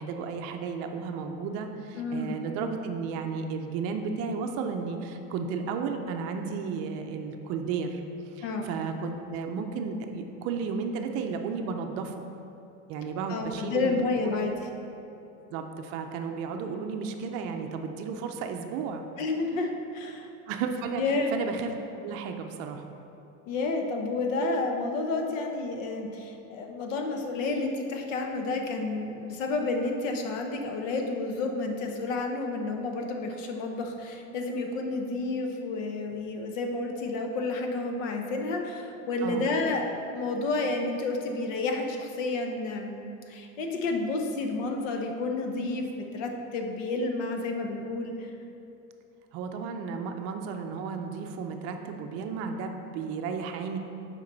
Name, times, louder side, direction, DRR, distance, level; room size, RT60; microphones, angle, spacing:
voice 1, 0.0-8.0 8.3-12.1 12.9-14.0 14.2-14.4 15.5-19.0 20.5-21.0 21.3-21.7 22.0-22.9 39.2-39.5 49.3-53.8, right 5 dB, 40° right, 5 dB, 0.5 m, -33 dB
voice 2, 2.0-2.4 8.4-8.7 13.3-14.7 19.2-20.3 21.0-21.3 23.5-48.3, left 3 dB, 80° left, 3 dB, 1.0 m, -30 dB
8.4 x 5.1 x 3.9 m, 2.8 s
supercardioid pair, 155°, 38 cm